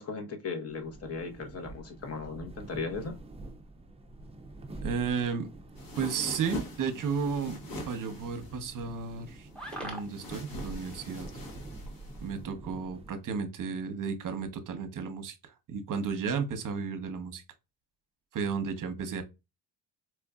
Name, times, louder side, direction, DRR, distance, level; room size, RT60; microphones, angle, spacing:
voice 1, 0.0-3.2, left 4 dB, 35° left, 1.0 m, -37 dB
sound 1, 0.7-13.4, right 2 dB, 15° right, 0.4 m, -46 dB
sound 2, 4.2-10.2, right 1 dB, ahead, 0.9 m, -48 dB
voice 2, 4.8-5.5 6.0-7.6 7.9-9.5 9.8-11.3 12.2-17.4 18.3-19.2, right 5 dB, 50° right, 0.9 m, -33 dB
sound 3, 5.8-12.4, left 1 dB, 55° left, 1.3 m, -43 dB
4.4 x 2.5 x 2.2 m
cardioid pair, 120°, 41 cm